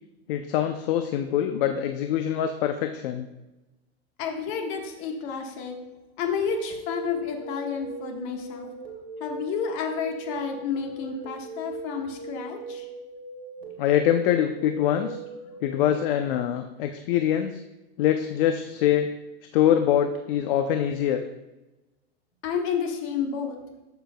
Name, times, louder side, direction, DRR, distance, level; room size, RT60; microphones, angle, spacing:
voice 1, 0.3-3.3 13.8-15.2 15.6-17.6 18.0-19.1 19.5-21.2, left 10 dB, 60° left, 7 dB, 0.6 m, -24 dB
voice 2, 4.2-5.8 6.2-8.7 9.2-12.9 22.4-23.6, left 6 dB, 40° left, 3 dB, 1.3 m, -30 dB
sound 1, 6.5-16.0, right 3 dB, 40° right, 2.0 m, -40 dB
12.5 x 6.7 x 2.2 m, 1.0 s
supercardioid pair, 150°, 32 cm